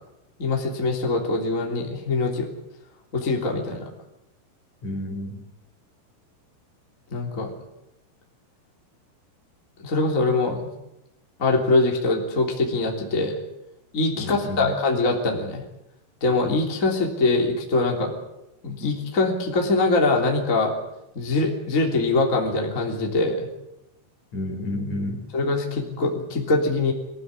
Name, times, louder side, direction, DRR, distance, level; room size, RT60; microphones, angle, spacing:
voice 1, 0.4-2.5 3.1-3.8 7.1-7.5 9.8-10.7 11.4-13.4 13.9-15.6 16.2-18.1 18.6-20.7 21.1-23.5 25.3-26.9, left 3 dB, 20° left, 0 dB, 2.8 m, -23 dB
voice 2, 4.8-5.4 14.1-14.7 24.3-25.2, left 1 dB, 40° left, 4 dB, 4.1 m, -30 dB
24.0 x 16.0 x 9.8 m, 0.90 s
omnidirectional pair, 5.7 m